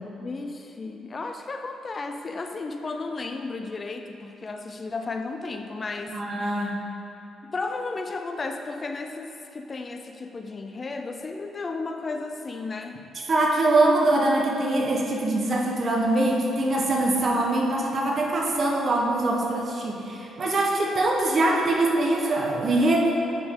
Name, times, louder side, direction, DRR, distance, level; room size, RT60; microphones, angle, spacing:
voice 1, 0.2-6.2 7.4-13.0, left 3 dB, 35° left, 6 dB, 0.4 m, -34 dB
voice 2, 6.1-6.8 13.1-23.2, right 2 dB, 45° right, -1 dB, 1.1 m, -23 dB
9.6 x 5.0 x 3.7 m, 2.9 s
cardioid pair, 90°, 0 cm